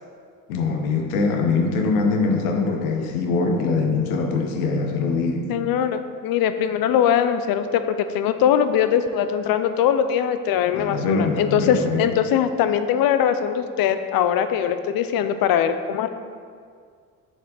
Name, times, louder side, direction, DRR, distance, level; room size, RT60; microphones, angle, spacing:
voice 1, 0.5-5.5 10.7-12.0, left 4 dB, 85° left, 3 dB, 1.0 m, -23 dB
voice 2, 5.5-16.1, left 9 dB, 55° left, 10 dB, 0.6 m, -21 dB
7.4 x 5.2 x 4.0 m, 2.1 s
hypercardioid pair, 65°, 43 cm